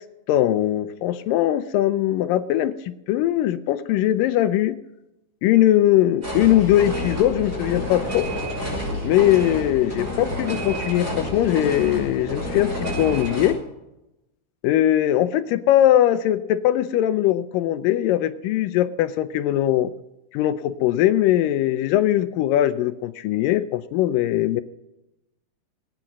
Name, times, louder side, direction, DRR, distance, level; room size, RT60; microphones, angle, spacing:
voice 1, 0.3-2.8 3.1-4.8 5.4-8.3 9.0-12.7 13.0-13.6 14.6-19.9 20.3-24.6, left 13 dB, 85° left, 10 dB, 2.0 m, -20 dB
sound 1, 6.2-13.5, left 1 dB, 25° right, 6.1 m, -29 dB
21.0 x 9.0 x 6.0 m, 0.92 s
omnidirectional pair, 4.6 m